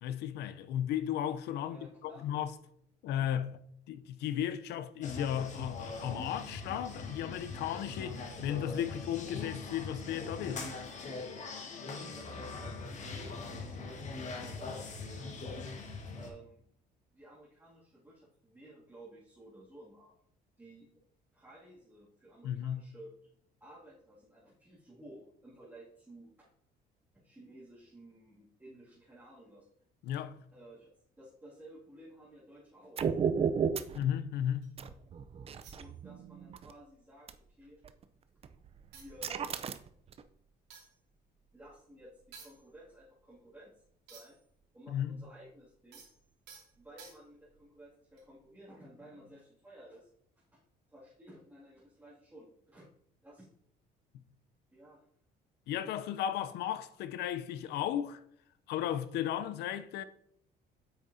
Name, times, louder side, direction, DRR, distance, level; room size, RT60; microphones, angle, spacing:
voice 1, 0.0-2.5 3.0-3.6 3.9-10.7 22.4-22.8 30.0-30.3 33.9-34.7 44.9-45.2 55.7-58.2 58.7-60.0, left 10 dB, 80° left, 0.6 m, -35 dB
voice 2, 1.7-2.3 11.3-11.8 12.1-15.4 16.2-16.6 17.1-20.2 20.6-20.9 21.3-23.3 23.6-26.5 27.1-29.7 30.5-30.9 31.2-33.1 35.8-37.8 38.9-39.4 41.5-43.7 44.1-44.4 44.7-46.0 46.8-50.1 50.4-50.6 50.9-52.9 53.2-53.5 54.7-55.1, right 1 dB, 10° right, 2.2 m, -54 dB
sound 1, 5.0-16.3, left 3 dB, 45° left, 1.5 m, -42 dB
sound 2, 33.0-34.0 34.8-36.7 37.3-37.4 37.8-38.0 38.4-40.2, right 6 dB, 35° right, 0.5 m, -33 dB
sound 3, 34.6-34.9 35.6-36.5 36.8-37.0 37.3-38.2 38.6-38.7 38.9-44.6 44.8-47.6 48.1-48.4, right 5 dB, 85° right, 2.5 m, -58 dB
8.4 x 6.2 x 2.7 m
cardioid pair, 110°, 17 cm